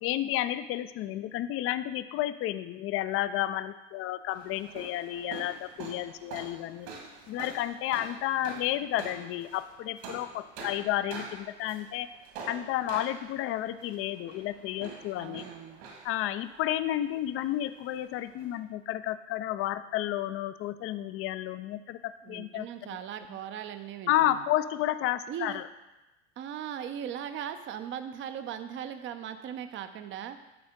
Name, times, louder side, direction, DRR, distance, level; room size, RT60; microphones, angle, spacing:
voice 1, 0.0-6.9 7.3-12.1 12.5-15.4 16.0-23.0 24.1-25.7, left 13 dB, 35° left, 13 dB, 0.5 m, -31 dB
sound 1, 4.3-18.6, right 4 dB, 60° right, 2.1 m, -46 dB
voice 2, 15.2-15.8 22.2-24.4 25.3-25.6 26.4-30.4, right 9 dB, 35° right, 9 dB, 0.6 m, -39 dB
11.5 x 4.2 x 3.7 m, 1.0 s
hypercardioid pair, 80°, 36 cm